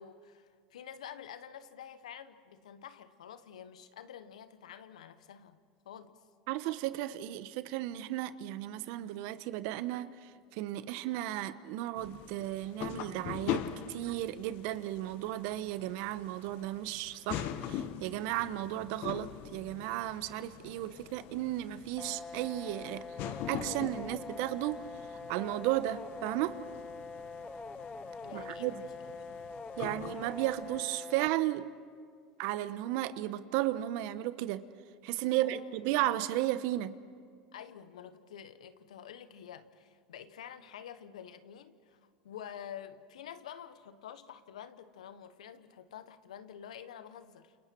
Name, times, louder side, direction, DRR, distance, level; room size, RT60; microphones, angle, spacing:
voice 1, 0.0-5.6 5.8-6.2 28.2-28.9 29.3-29.4 35.3-35.8 37.5-47.6, left 9 dB, 85° left, 12 dB, 1.2 m, -48 dB
voice 2, 6.5-23.0 23.5-24.8 25.1-26.6 28.3-28.8 29.8-31.7 32.4-34.6 35.0-36.9, right 15 dB, 65° right, 14 dB, 1.0 m, -34 dB
sound 1, 11.9-30.8, left 10 dB, 60° left, 1.2 m, -43 dB
sound 2, 22.0-31.3, left 3 dB, 15° left, 0.9 m, -44 dB
29.0 x 29.0 x 4.6 m, 2.1 s
hypercardioid pair, 95°, 4 cm